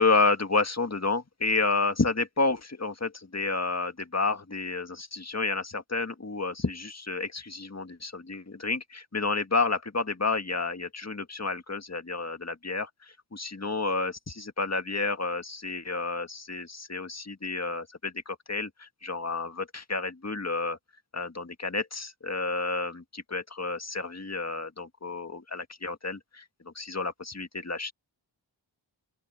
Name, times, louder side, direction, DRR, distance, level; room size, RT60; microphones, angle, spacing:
voice 1, 0.0-20.8 21.1-27.9, left 3 dB, 35° left, 1.8 m, -30 dB
open air
wide cardioid pair, 45°, 46 cm